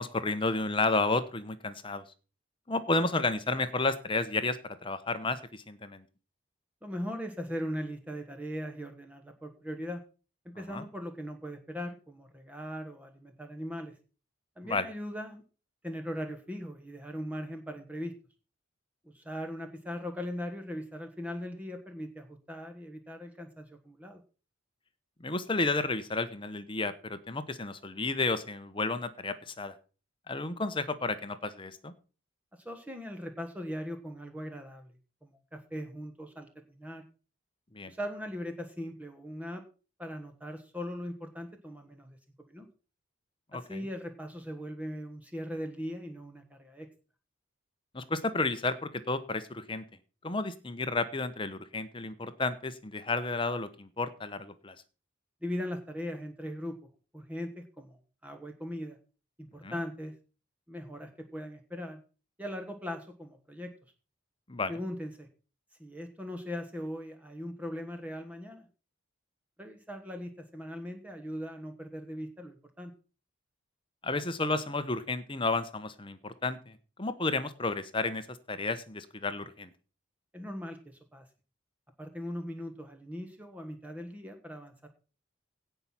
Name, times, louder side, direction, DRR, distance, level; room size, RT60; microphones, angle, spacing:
voice 1, 0.0-2.0 2.7-6.0 10.7-10.8 14.6-14.9 25.2-29.7 30.3-31.9 37.7-37.9 43.5-43.8 47.9-49.8 50.2-54.7 59.6-59.7 64.5-64.7 74.0-79.7, left 3 dB, 25° left, 11 dB, 0.9 m, -32 dB
voice 2, 6.8-10.0 10.4-14.0 14.6-15.4 15.8-18.1 19.0-24.2 32.5-34.9 35.2-37.0 37.9-39.6 40.0-42.2 42.5-42.7 43.5-46.9 55.4-56.8 57.1-59.0 59.4-60.1 60.7-62.0 62.4-63.7 64.7-65.3 65.8-68.7 69.6-72.9 80.3-81.3 82.0-84.9, equal, 5° right, 5 dB, 1.2 m, -39 dB
17.0 x 5.7 x 6.0 m, 0.35 s
head